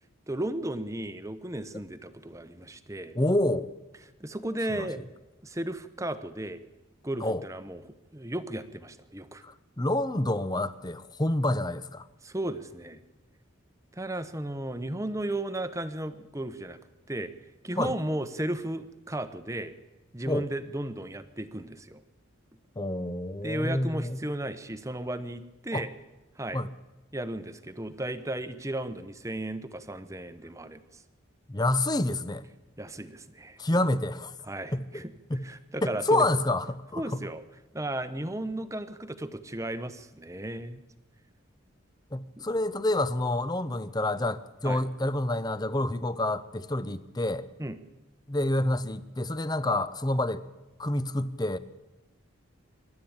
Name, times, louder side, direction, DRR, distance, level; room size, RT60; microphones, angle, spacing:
voice 1, 0.3-3.2 4.2-5.0 5.4-6.6 7.0-9.4 12.2-13.0 13.9-16.8 17.1-17.3 17.6-19.7 20.1-22.0 23.4-25.9 26.4-26.6 27.1-31.0 32.8-33.6 34.4-36.3 37.0-37.4 37.7-40.8 42.4-42.5 44.6-44.8 47.6-47.8, right 1 dB, 15° right, 11 dB, 0.9 m, -35 dB
voice 2, 3.1-3.7 4.7-4.9 7.2-7.4 9.4-12.1 17.8-17.9 20.3-20.5 22.8-24.2 25.7-25.8 26.5-26.7 31.5-32.4 33.6-34.3 34.7-35.0 35.3-35.4 35.8-37.2 42.1-47.5 48.3-50.4 50.8-51.6, left 1 dB, 20° left, 14 dB, 0.7 m, -28 dB
25.0 x 12.0 x 8.8 m, 1.1 s
head